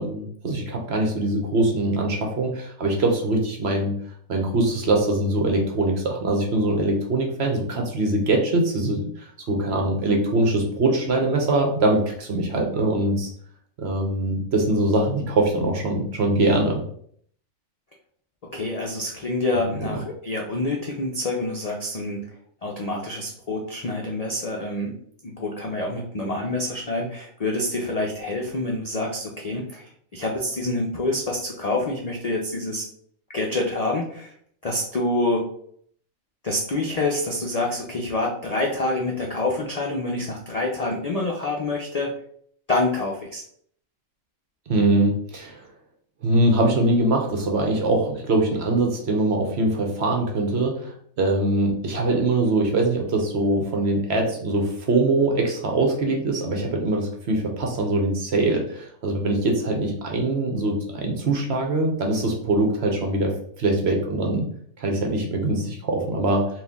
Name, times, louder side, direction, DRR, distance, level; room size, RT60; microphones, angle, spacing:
voice 1, 0.0-3.9 4.3-13.3 13.8-16.8 19.7-20.0 44.7-45.6 46.2-64.5 64.8-66.5, right 2 dB, 55° right, 2 dB, 1.0 m, -23 dB
voice 2, 18.5-22.3 22.6-25.0 25.2-32.8 33.3-34.3 34.6-35.5 36.4-42.1 42.7-43.4, left 2 dB, 55° left, -1 dB, 0.4 m, -27 dB
4.2 x 2.5 x 3.5 m, 0.63 s
omnidirectional pair, 1.4 m